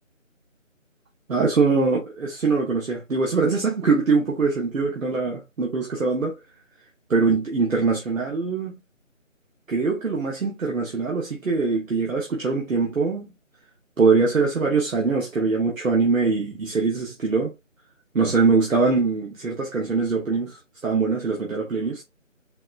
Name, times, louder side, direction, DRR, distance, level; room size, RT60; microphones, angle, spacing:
voice 1, 1.3-6.4 7.1-8.7 9.7-13.3 14.0-17.5 18.1-22.0, right 4 dB, 80° right, 1.1 m, -22 dB
4.1 x 2.0 x 2.4 m
figure-of-eight pair, 165°, 40 cm